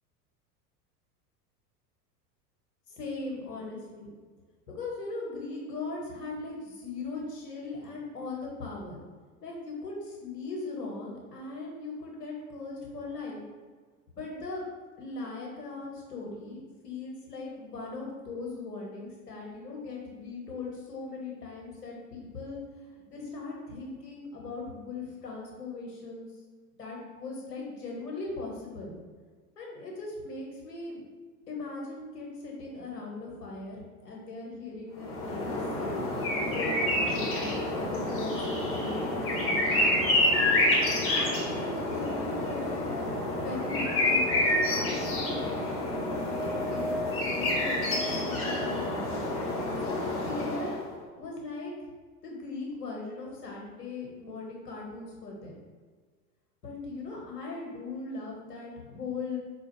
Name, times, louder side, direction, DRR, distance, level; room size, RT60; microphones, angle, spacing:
voice 1, 2.9-4.1 4.7-9.0 9.4-13.4 14.2-14.6 15.0-26.3 26.8-28.9 29.6-31.0 31.5-36.0 36.3-40.0 41.1-42.8 43.4-45.6 46.4-49.2 49.8-50.8 51.2-51.7 52.2-55.5 56.6-59.4, left 3 dB, 80° left, -2 dB, 1.1 m, -39 dB
sound 1, 35.0-50.9, left 1 dB, 25° left, 1.0 m, -28 dB
4.3 x 2.3 x 3.0 m, 1.5 s
figure-of-eight pair, 80°, 47 cm